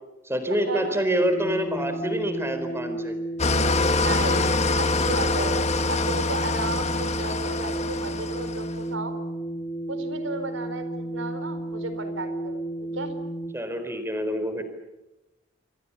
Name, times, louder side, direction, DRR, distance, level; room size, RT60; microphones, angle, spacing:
voice 1, 0.2-3.2 4.4-4.5 13.5-14.6, equal, 15° right, 8 dB, 4.2 m, -26 dB
sound 1, 1.2-13.5, right 1 dB, 15° left, 2.9 m, -33 dB
Engine starting / Idling, 3.4-8.8, left 3 dB, 35° left, 1.8 m, -25 dB
voice 2, 3.9-4.4 4.8-5.5 5.9-9.2 9.9-12.6 12.9-13.1, right 3 dB, 70° right, 9 dB, 4.4 m, -33 dB
28.5 x 25.0 x 7.0 m, 1.0 s
head